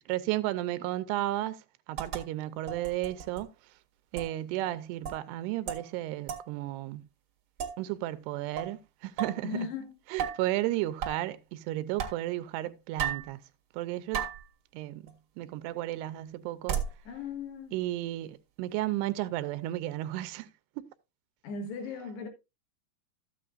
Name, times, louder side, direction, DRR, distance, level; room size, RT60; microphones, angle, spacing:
voice 1, 0.0-3.8 4.1-7.1 7.8-9.7 10.1-13.4 13.7-14.3 14.7-16.8 17.7-20.5 20.8-20.9, right 15 dB, 85° right, 2.7 m, -33 dB
sound 1, 2.0-2.2 2.7-3.4 4.2-4.3 5.0-5.2 5.7-5.9 6.3-6.5 7.6-7.8 8.6-8.7 9.2-9.4 10.2-10.5 11.0-11.2 12.0-12.2 13.0-13.3 14.1-14.5 15.1-15.2 16.7-17.0, right 8 dB, 55° right, 1.5 m, -34 dB
voice 2, 9.4-9.9 17.1-17.7 21.4-22.3, left 5 dB, 85° left, 3.8 m, -37 dB
13.5 x 8.6 x 2.4 m
omnidirectional pair, 4.7 m